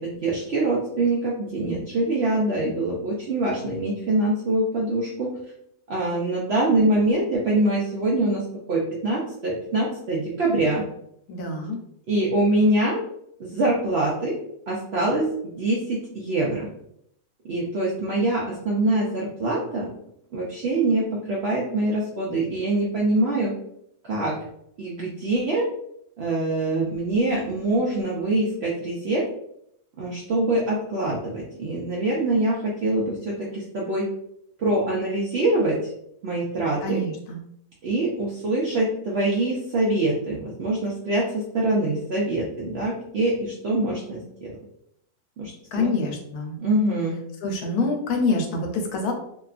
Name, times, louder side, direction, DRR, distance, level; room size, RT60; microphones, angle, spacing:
voice 1, 0.0-5.3 5.9-10.8 12.1-13.0 13.4-14.3 14.7-16.7 17.4-19.9 20.3-23.5 24.0-24.4 24.8-25.7 26.2-29.2 30.0-34.1 34.6-35.8 36.2-37.0 37.8-44.5 45.4-45.9 46.6-47.2, right 2 dB, 70° right, -4 dB, 0.6 m, -24 dB
voice 2, 11.3-11.8 36.8-37.4 45.7-46.6 47.4-49.1, left 3 dB, 80° left, 2 dB, 1.1 m, -26 dB
2.7 x 2.3 x 2.4 m, 0.73 s
omnidirectional pair, 1.6 m